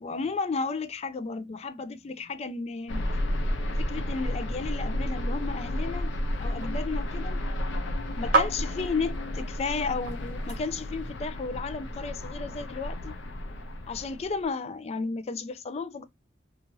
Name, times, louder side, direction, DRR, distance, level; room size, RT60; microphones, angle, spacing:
voice 1, 0.0-3.1 3.8-6.1 6.4-7.4 8.2-13.1 13.9-16.0, left 4 dB, 35° left, 0.3 m, -33 dB
sound 1, 2.9-14.5, left 1 dB, 90° left, 0.6 m, -32 dB
Glass on Counter, 5.3-11.1, right 4 dB, 55° right, 0.8 m, -34 dB
2.6 x 2.4 x 3.0 m
head